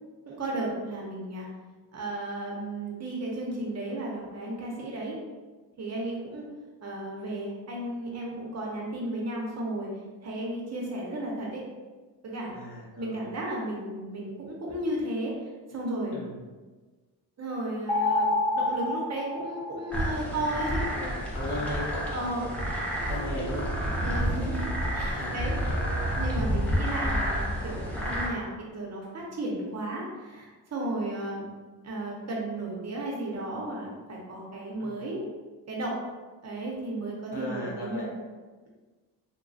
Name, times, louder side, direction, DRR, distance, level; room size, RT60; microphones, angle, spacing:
voice 1, 0.3-1.5 1.9-5.2 5.8-6.4 6.8-9.9 10.2-11.6 12.2-12.5 13.0-15.3 15.7-16.2 17.4-18.3 18.5-20.8 22.1-22.4 24.0-25.6 26.2-31.5 31.8-35.2 35.7-36.0 36.4-38.1, right 1 dB, 40° right, -2 dB, 0.6 m, -34 dB
voice 2, 12.5-13.3 16.1-16.3 20.1-20.4 20.8-22.5 23.1-24.8 25.1-25.3 27.8-28.1 34.8-35.0 37.3-38.1, left 1 dB, 65° left, -4 dB, 1.0 m, -38 dB
sound 1, 17.9-20.3, left 2 dB, 25° left, 0.9 m, -28 dB
sound 2, 19.9-28.3, equal, 5° left, 0.4 m, -29 dB
3.1 x 2.2 x 2.5 m, 1.3 s
cardioid pair, 120°, 43 cm